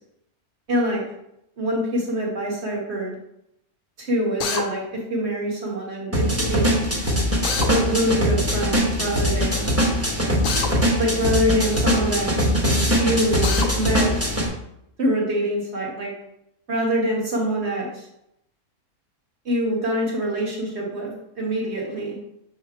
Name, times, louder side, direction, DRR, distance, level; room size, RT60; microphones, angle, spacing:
voice 1, 0.7-1.0 1.6-3.2 4.0-6.7 7.7-9.7 11.0-12.5 13.0-14.1 15.0-16.1 16.7-18.1 19.5-22.2, equal, 45° right, -2 dB, 1.8 m, -25 dB
Drill, 4.4-4.7 7.4-7.7 10.4-10.7 13.4-13.7, left 5 dB, 65° left, 1.1 m, -25 dB
sound 1, 6.1-14.5, equal, 10° right, 1.0 m, -22 dB
6.6 x 3.6 x 4.4 m, 0.80 s
omnidirectional pair, 1.6 m